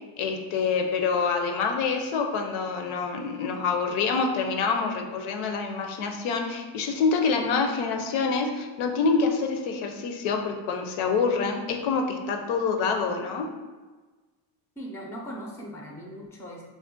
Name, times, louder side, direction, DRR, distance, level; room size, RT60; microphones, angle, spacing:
voice 1, 0.2-13.5, left 5 dB, 85° left, 4 dB, 0.6 m, -26 dB
voice 2, 14.8-16.6, equal, 5° left, -1 dB, 0.3 m, -39 dB
2.4 x 2.1 x 3.7 m, 1.3 s
cardioid pair, 105°, 46 cm